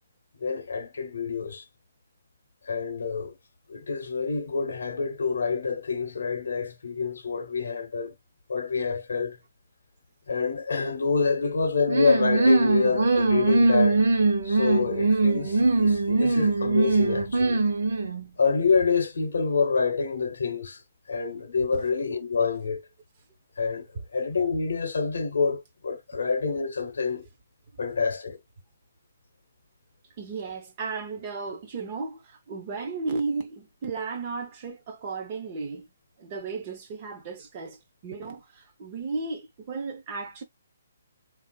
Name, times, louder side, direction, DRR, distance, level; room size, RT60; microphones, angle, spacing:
voice 1, 0.4-1.6 2.7-3.4 3.7-8.1 8.5-9.4 10.3-14.0 14.4-17.6 18.4-20.8 21.1-22.8 23.6-23.9 24.1-27.3 27.8-28.4, left 5 dB, 65° left, 0.7 m, -27 dB
sound 1, 11.9-18.3, right 3 dB, 55° right, 0.8 m, -22 dB
voice 2, 30.2-35.9 36.2-40.4, right 4 dB, 20° right, 0.5 m, -34 dB
3.6 x 2.4 x 2.2 m
hypercardioid pair, 180°, 0 cm